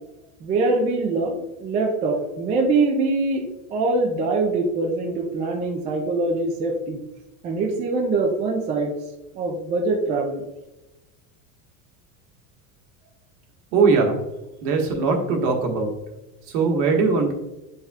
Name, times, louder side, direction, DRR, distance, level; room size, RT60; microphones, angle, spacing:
voice 1, 0.4-3.4 3.7-7.0 7.4-8.9 9.4-10.4, right 3 dB, 20° right, 2 dB, 0.3 m, -23 dB
voice 2, 13.7-14.2 14.6-15.9 16.5-17.3, right 4 dB, 65° right, 1 dB, 1.5 m, -20 dB
8.7 x 5.5 x 2.3 m, 1.0 s
cardioid pair, 180°, 40 cm